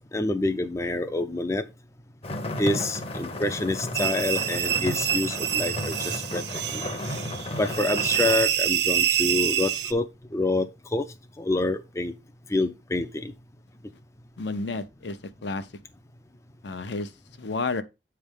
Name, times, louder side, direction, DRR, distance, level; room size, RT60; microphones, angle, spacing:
voice 1, 0.1-1.6 2.6-6.4 6.7-6.8 7.6-10.1 10.3-11.1 11.4-12.1 12.5-13.3, left 2 dB, 15° left, 0.4 m, -27 dB
sound 1, 2.2-8.4, left 1 dB, 35° left, 0.8 m, -33 dB
sound 2, 3.9-9.9, right 10 dB, 65° right, 0.6 m, -27 dB
voice 2, 14.4-15.7 16.6-17.1 17.4-17.8, left 3 dB, 70° left, 0.8 m, -31 dB
8.2 x 3.4 x 5.1 m
head